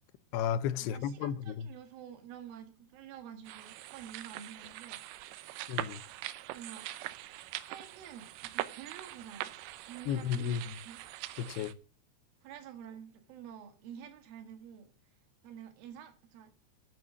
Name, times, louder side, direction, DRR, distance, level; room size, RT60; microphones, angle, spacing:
voice 1, 0.3-1.7 5.7-6.0 10.1-10.6 11.4-11.7, left 9 dB, 80° left, 2.7 m, -33 dB
voice 2, 0.9-5.0 6.5-6.9 7.6-9.5 9.8-11.0 12.4-14.9 15.4-16.5, right 9 dB, 65° right, 3.3 m, -49 dB
sound 1, 3.4-11.7, right 15 dB, 90° right, 3.0 m, -43 dB
12.5 x 6.5 x 7.1 m
omnidirectional pair, 4.9 m